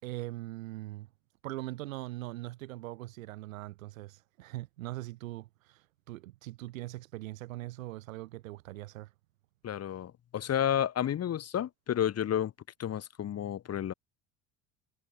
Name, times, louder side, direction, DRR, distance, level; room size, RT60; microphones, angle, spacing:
voice 1, 0.0-1.1 1.4-9.1, right 18 dB, 70° right, 7.5 m, -41 dB
voice 2, 9.6-12.5 12.8-13.9, left 10 dB, 35° left, 1.9 m, -31 dB
figure-of-eight pair, 60°, 41 cm